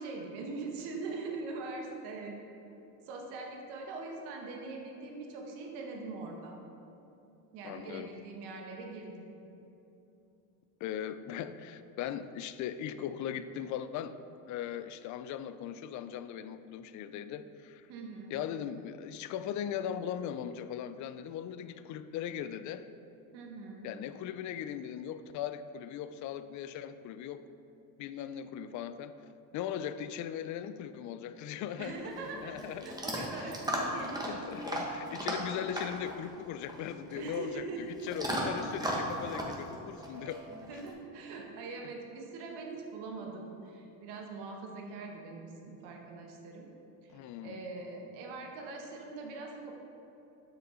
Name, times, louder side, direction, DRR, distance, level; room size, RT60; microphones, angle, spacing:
voice 1, 0.0-2.3 3.0-6.6 7.5-9.3 17.9-18.3 23.3-23.9 31.8-32.6 32.8-34.3 34.7-34.8 37.1-38.1 40.6-46.7 47.0-49.7, right 3 dB, 65° right, 1 dB, 1.3 m, -42 dB
voice 2, 7.6-8.1 10.8-14.2 14.5-17.9 18.3-22.9 23.8-27.4 28.0-29.1 29.5-32.9 33.3-33.5 34.2-40.4 47.1-47.7, left 9 dB, 45° left, 11 dB, 0.4 m, -39 dB
Chewing mastication / Dog, 31.8-40.9, equal, 10° right, 1.2 m, -37 dB
7.5 x 6.1 x 3.7 m, 2.9 s
supercardioid pair, 90°, 43 cm